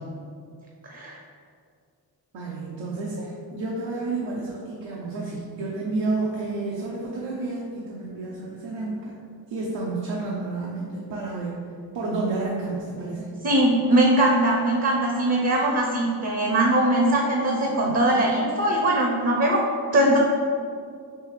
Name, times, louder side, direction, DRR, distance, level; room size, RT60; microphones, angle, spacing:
voice 1, 0.8-1.2 13.4-19.6 19.9-20.2, right 1 dB, 35° right, -1 dB, 0.5 m, -21 dB
voice 2, 2.3-9.2 9.5-11.6 11.9-13.3 17.3-18.3, right 3 dB, 85° right, -4 dB, 0.6 m, -31 dB
3.4 x 2.7 x 3.2 m, 2.3 s
cardioid pair, 45°, 43 cm